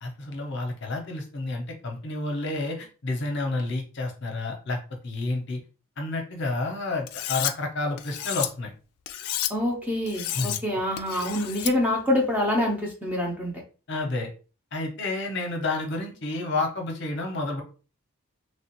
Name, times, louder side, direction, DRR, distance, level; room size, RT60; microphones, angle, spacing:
voice 1, 0.0-4.8 5.0-5.6 6.0-8.7 10.4-10.6 13.9-14.3 14.7-17.6, left 2 dB, 55° left, 2 dB, 0.7 m, -30 dB
Cutlery silverware, 7.1-7.5 8.0-8.5 9.1-9.5 10.1-10.6 11.0-11.7, left 12 dB, 85° left, 0.3 m, -31 dB
voice 2, 9.5-13.5, left 1 dB, 5° right, -1 dB, 0.6 m, -26 dB
3.1 x 2.4 x 2.9 m, 0.35 s
head